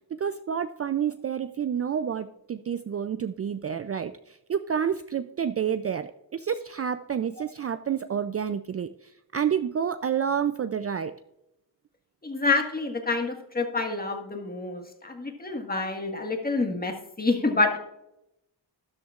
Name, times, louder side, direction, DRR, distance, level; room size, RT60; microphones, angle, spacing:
voice 1, 0.2-11.1, right 8 dB, 35° right, 11 dB, 0.4 m, -29 dB
voice 2, 12.2-17.8, left 3 dB, 20° left, 4 dB, 1.6 m, -27 dB
13.0 x 11.5 x 2.4 m, 0.85 s
wide cardioid pair, 110°, 41 cm